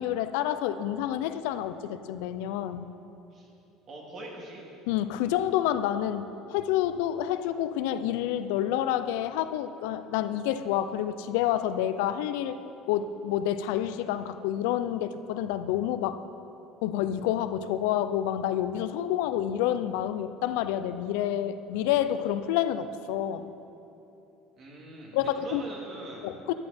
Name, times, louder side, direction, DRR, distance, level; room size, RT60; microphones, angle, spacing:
voice 1, 0.0-2.9 4.9-12.6 12.9-16.2 16.8-23.5 25.1-25.6 26.2-26.5, left 11 dB, 85° left, 11 dB, 0.5 m, -28 dB
voice 2, 3.9-4.7 24.6-26.3, right 2 dB, 45° right, -2 dB, 2.9 m, -43 dB
13.5 x 11.0 x 4.4 m, 2.9 s
cardioid pair, 135°, 0 cm